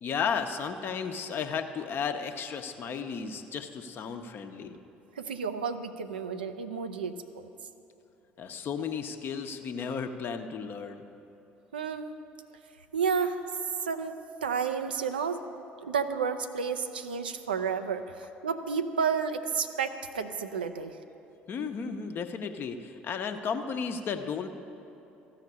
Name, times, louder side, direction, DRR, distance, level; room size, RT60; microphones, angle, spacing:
voice 1, 0.0-4.8 8.4-11.0 21.5-24.5, left 6 dB, 45° left, 7 dB, 0.8 m, -34 dB
voice 2, 5.2-7.5 11.7-12.1 12.9-13.4 13.8-14.1 14.4-15.4 15.8-21.0, right 6 dB, 80° right, 8 dB, 0.5 m, -31 dB
14.0 x 5.8 x 8.5 m, 2.9 s
figure-of-eight pair, 55°, 5 cm